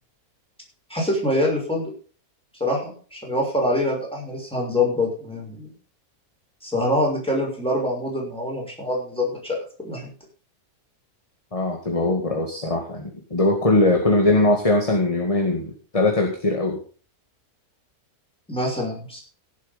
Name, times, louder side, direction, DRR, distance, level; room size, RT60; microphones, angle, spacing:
voice 1, 0.9-1.9 2.6-5.7 6.6-9.6 9.8-10.1 18.5-19.2, left 1 dB, 5° left, -2 dB, 6.0 m, -25 dB
voice 2, 11.5-16.8, left 2 dB, 25° left, 2 dB, 2.1 m, -21 dB
17.0 x 7.7 x 5.4 m, 0.40 s
omnidirectional pair, 1.6 m